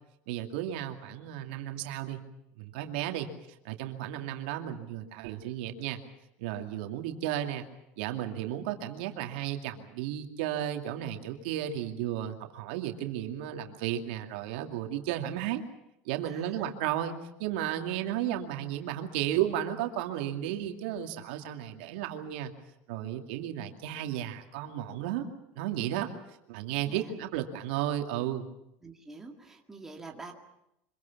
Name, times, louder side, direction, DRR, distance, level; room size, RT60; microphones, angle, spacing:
voice 1, 0.3-2.2 2.6-3.3 3.6-6.0 6.4-7.7 8.0-15.6 16.0-22.5 22.9-25.2 25.5-26.1 26.5-28.5, right 11 dB, 85° right, 5 dB, 2.4 m, -33 dB
voice 2, 16.2-16.7 17.9-18.0 26.1-26.2 26.8-27.1 28.8-30.3, right 3 dB, 10° right, 1 dB, 2.1 m, -47 dB
25.5 x 22.5 x 7.2 m, 0.83 s
cardioid pair, 170°, 5 cm